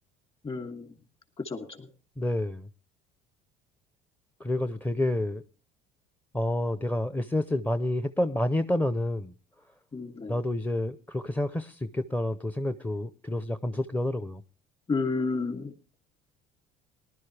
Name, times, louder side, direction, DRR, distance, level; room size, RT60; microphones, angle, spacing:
voice 1, 0.4-0.9 1.4-1.9 9.9-10.4 14.9-15.7, left 4 dB, 30° left, 2.7 m, -31 dB
voice 2, 2.2-2.6 4.4-5.4 6.3-9.3 10.3-14.4, left 1 dB, 10° left, 0.6 m, -29 dB
19.0 x 11.5 x 3.3 m
supercardioid pair, 90°, 18 cm